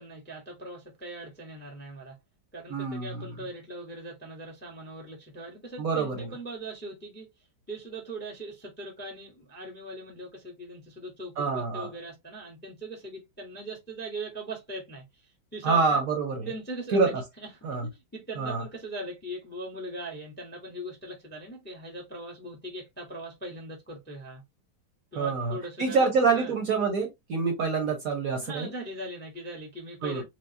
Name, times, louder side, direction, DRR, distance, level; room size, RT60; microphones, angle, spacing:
voice 1, 0.0-2.2 2.5-7.3 7.7-16.0 16.5-17.0 17.4-17.5 17.9-24.4 25.1-26.5 28.4-30.2, right 2 dB, 10° left, 0.6 m, -40 dB
voice 2, 2.7-3.3 5.8-6.3 11.4-11.9 15.6-16.5 16.9-17.1 17.6-17.9 18.4-18.6 25.2-28.7 30.0-30.2, right 4 dB, 55° right, 1.1 m, -26 dB
4.7 x 2.0 x 2.7 m
omnidirectional pair, 2.2 m